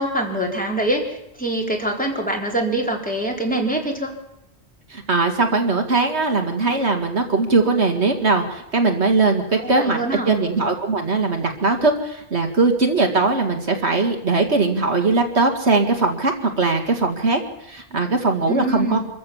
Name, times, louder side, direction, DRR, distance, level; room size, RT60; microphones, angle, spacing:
voice 1, 0.0-4.1 9.8-10.4 18.5-19.0, right 1 dB, 5° left, 0 dB, 4.0 m, -24 dB
voice 2, 4.9-10.0 10.3-17.4 17.7-19.0, right 3 dB, 70° right, 4 dB, 2.5 m, -20 dB
26.0 x 14.5 x 7.2 m, 0.84 s
omnidirectional pair, 1.2 m